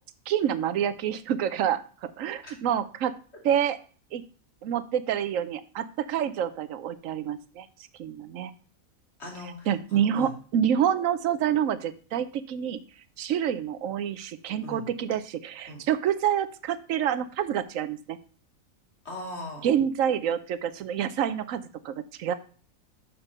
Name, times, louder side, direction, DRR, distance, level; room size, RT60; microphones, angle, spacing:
voice 1, 0.3-3.1 3.4-3.8 4.1-4.2 4.6-7.7 8.0-8.5 9.7-12.8 13.2-18.2 19.6-22.3, right 9 dB, 70° right, 14 dB, 1.0 m, -27 dB
voice 2, 9.2-10.3 14.6-14.8 15.7-15.8 19.0-19.7, left 1 dB, 50° left, -1 dB, 2.8 m, -40 dB
6.7 x 5.9 x 5.5 m, 0.41 s
omnidirectional pair, 1.5 m